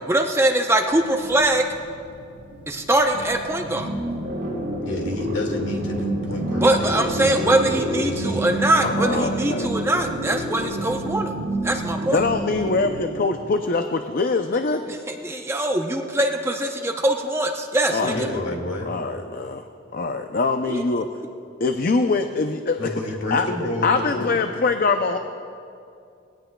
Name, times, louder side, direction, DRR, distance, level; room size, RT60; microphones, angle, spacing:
voice 1, 0.1-1.6 2.7-3.9 6.6-11.3 11.6-12.2 14.9-18.3 20.7-21.0, right 1 dB, 15° right, 3 dB, 0.6 m, -22 dB
sound 1, 0.9-13.2, right 1 dB, 75° right, 3.3 m, -29 dB
voice 2, 4.8-8.5 18.0-18.9 22.8-24.3, left 1 dB, 65° left, 0 dB, 2.2 m, -30 dB
voice 3, 8.8-9.7 12.1-14.8 17.9-18.5 18.9-19.7 19.9-21.1 21.6-23.0 23.3-23.5 23.8-25.2, left 3 dB, 45° left, 6 dB, 0.5 m, -23 dB
20.0 x 17.0 x 2.3 m, 2.5 s
head